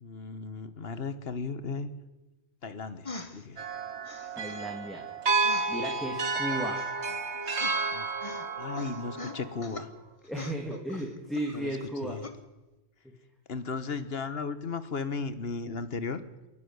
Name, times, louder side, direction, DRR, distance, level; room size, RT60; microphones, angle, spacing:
voice 1, 0.0-1.9 2.6-3.6 7.9-8.1 8.6-9.9 11.5-11.7 12.0-12.3 13.5-16.2, left 4 dB, 65° left, 12 dB, 1.6 m, -35 dB
sound 1, 3.0-3.4 4.1-4.6 5.4-6.3 6.8-8.0 8.2-8.5 8.8-9.9 10.3-11.9 12.2-12.4, left 3 dB, 30° left, 1.5 m, -43 dB
sound 2, 3.6-9.8, right 4 dB, 85° right, 1.7 m, -31 dB
voice 2, 4.4-5.0 5.7-6.8 10.2-12.2, right 1 dB, ahead, 0 dB, 2.4 m, -35 dB
27.5 x 11.5 x 9.6 m, 1.1 s
omnidirectional pair, 1.1 m